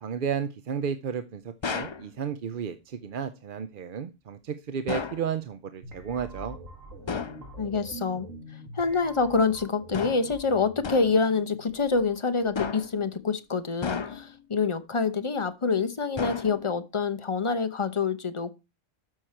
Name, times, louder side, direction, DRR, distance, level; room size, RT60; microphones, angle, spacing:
voice 1, 0.0-6.6, right 7 dB, 50° right, 0.7 m, -33 dB
sound 1, 1.6-2.1 4.9-5.3 7.1-7.5 9.9-10.4 10.8-11.2 12.6-13.0 13.8-14.4 16.2-16.8, left 5 dB, 45° left, 0.3 m, -33 dB
sound 2, 5.8-12.7, right 1 dB, 90° right, 2.5 m, -45 dB
voice 2, 7.6-8.3 8.7-18.5, left 4 dB, 30° left, 0.8 m, -26 dB
12.5 x 6.3 x 4.4 m
omnidirectional pair, 1.3 m